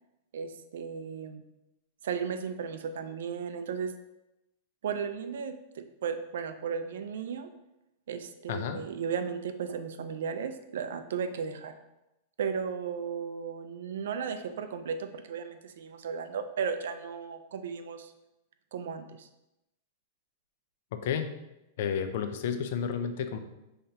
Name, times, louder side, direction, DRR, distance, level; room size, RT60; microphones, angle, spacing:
voice 1, 0.3-1.4 2.0-3.9 4.8-7.5 8.1-11.8 12.4-18.1 18.7-19.3, right 6 dB, 80° right, 8 dB, 0.4 m, -35 dB
voice 2, 8.5-8.8 20.9-21.3 21.8-23.4, left 7 dB, 55° left, 8 dB, 0.5 m, -31 dB
5.6 x 3.3 x 2.8 m, 0.92 s
supercardioid pair, 170°, 0 cm